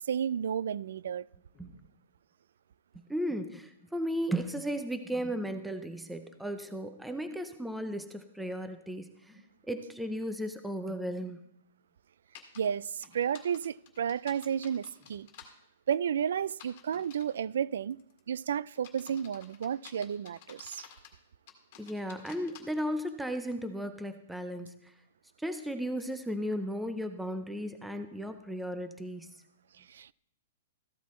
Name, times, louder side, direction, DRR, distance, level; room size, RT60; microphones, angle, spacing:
voice 1, 0.1-1.3 12.6-15.3 15.9-18.0 18.3-20.9 29.8-30.1, right 8 dB, 70° right, 0.3 m, -32 dB
sound 1, 1.5-1.9 3.3-3.5 5.4-5.8 7.2-7.5 9.3-9.5 11.2-11.4 13.0-13.2 14.9-15.2 16.9-17.4 19.0-19.3 20.1-20.2, equal, 15° left, 3.4 m, -60 dB
voice 2, 3.1-9.3 9.7-11.4 21.8-24.9 25.4-29.3, equal, ahead, 0.6 m, -35 dB
sound 2, 12.3-12.6 13.0-15.5 16.5-17.3 17.9-18.2 18.7-21.2 21.5-22.6, left 10 dB, 40° left, 2.0 m, -52 dB
14.5 x 12.0 x 3.1 m
hypercardioid pair, 165°, 0 cm